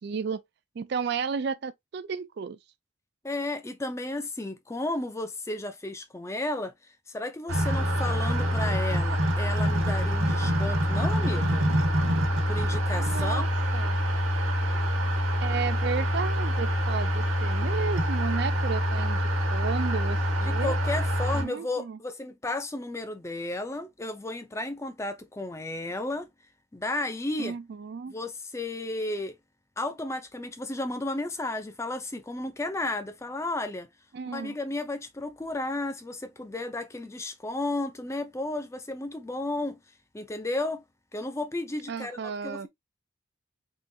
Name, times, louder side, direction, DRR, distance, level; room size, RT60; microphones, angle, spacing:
voice 1, 0.0-0.4 0.8-2.6 12.9-13.5 13.7-14.0 15.4-19.2 19.5-20.8 21.3-22.0 27.4-28.2 34.1-34.6 41.9-42.7, right 6 dB, 50° right, 0.3 m, -33 dB
voice 2, 3.2-6.7 7.1-11.7 12.5-13.4 20.4-26.3 26.7-27.6 28.1-29.4 29.8-33.9 34.3-39.8 40.1-40.8 41.1-42.7, left 2 dB, 15° left, 0.4 m, -33 dB
sound 1, 7.5-21.4, equal, 80° right, 1.2 m, -26 dB
3.7 x 2.9 x 2.6 m
head